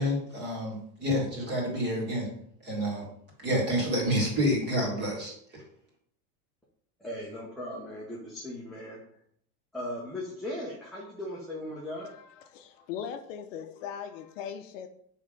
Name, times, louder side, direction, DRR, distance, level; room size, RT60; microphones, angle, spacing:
voice 1, 0.0-2.3 2.6-3.1 3.4-5.6, equal, 25° right, -2 dB, 2.0 m, -29 dB
voice 2, 7.0-9.0 9.7-12.1, left 1 dB, ahead, -6 dB, 0.6 m, -38 dB
voice 3, 12.4-14.9, left 8 dB, 55° left, 7 dB, 0.7 m, -39 dB
6.4 x 3.7 x 5.0 m, 0.66 s
supercardioid pair, 160°, 45 cm